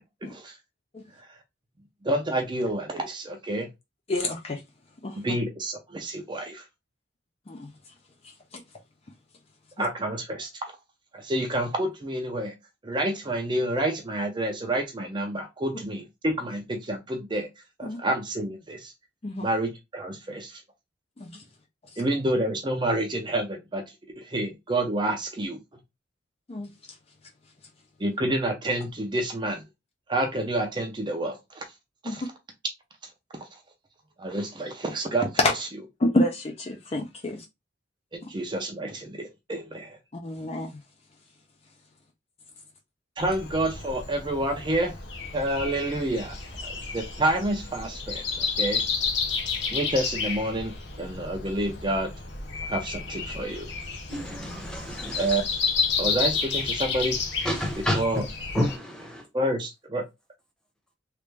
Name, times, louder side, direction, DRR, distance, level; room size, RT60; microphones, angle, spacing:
voice 1, 0.2-0.6 1.2-1.4 2.0-3.7 5.2-6.7 9.8-10.5 11.1-12.5 12.8-17.5 17.8-18.9 19.4-20.6 22.0-23.8 24.2-25.6 28.0-29.6 30.1-31.7 32.0-32.3 33.4-33.6 34.2-35.3 38.1-40.0 43.2-44.9 45.3-46.4 46.6-48.8 49.7-52.1 52.6-53.7 55.2-55.4 56.0-57.2 57.9-58.2 59.3-60.0, right 1 dB, 25° right, 0.5 m, -28 dB
voice 2, 4.1-4.6 5.0-5.2 7.5-7.7 8.2-8.6 9.8-9.9 17.8-18.0 19.2-19.5 21.2-21.4 21.9-22.0 26.5-26.7 32.0-32.2 36.0-37.5 38.2-38.3 40.1-40.8, left 1 dB, 30° left, 0.4 m, -29 dB
Breathing, 43.2-58.8, left 5 dB, 65° left, 0.8 m, -31 dB
voice 3, 54.1-55.4 57.4-58.0 58.5-59.2, equal, 5° left, 0.9 m, -29 dB
3.2 x 2.5 x 3.2 m
head